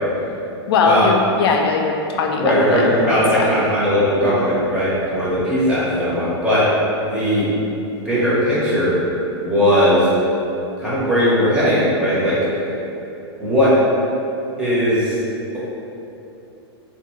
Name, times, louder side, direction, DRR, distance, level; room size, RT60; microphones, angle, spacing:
voice 1, 0.7-3.5, left 4 dB, 65° left, 2 dB, 0.4 m, -20 dB
voice 2, 2.4-6.7 7.1-7.5 8.0-9.0 9.4-10.1 10.8-12.4 13.4-13.7 14.6-15.1, equal, 5° right, -10 dB, 1.0 m, -18 dB
3.5 x 2.2 x 3.1 m, 2.9 s
hypercardioid pair, 135°, 14 cm